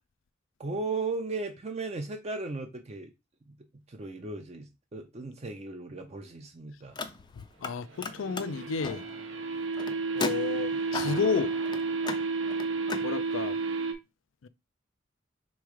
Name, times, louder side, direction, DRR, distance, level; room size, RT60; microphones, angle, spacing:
voice 1, 0.6-3.1 3.9-7.0, right 3 dB, 35° right, 0.6 m, -36 dB
Car, 6.8-7.7 8.0-13.1, left 3 dB, 25° left, 0.5 m, -38 dB
voice 2, 7.6-9.0 10.2-11.5 13.0-13.6 14.4-14.5, left 5 dB, 80° left, 0.4 m, -31 dB
sound 1, 7.9-13.9, right 4 dB, 75° right, 0.7 m, -31 dB
3.5 x 3.1 x 4.8 m
head